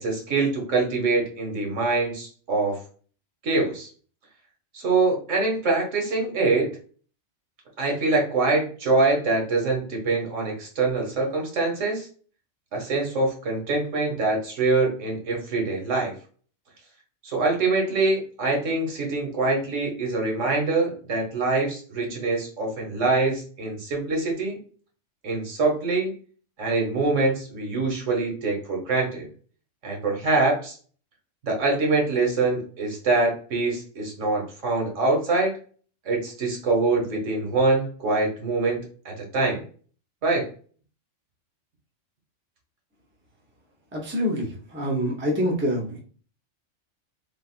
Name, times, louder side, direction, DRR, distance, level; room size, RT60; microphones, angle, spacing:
voice 1, 0.0-2.8 3.4-3.9 4.7-6.7 7.8-12.1 12.7-16.1 17.2-24.6 25.2-26.1 26.6-29.3 29.8-30.7 31.4-35.5 36.0-39.6 40.2-40.5, right 3 dB, 75° right, 0 dB, 1.4 m, -24 dB
voice 2, 43.9-46.0, equal, 15° right, -1 dB, 0.5 m, -26 dB
3.4 x 2.4 x 2.4 m, 0.42 s
omnidirectional pair, 1.3 m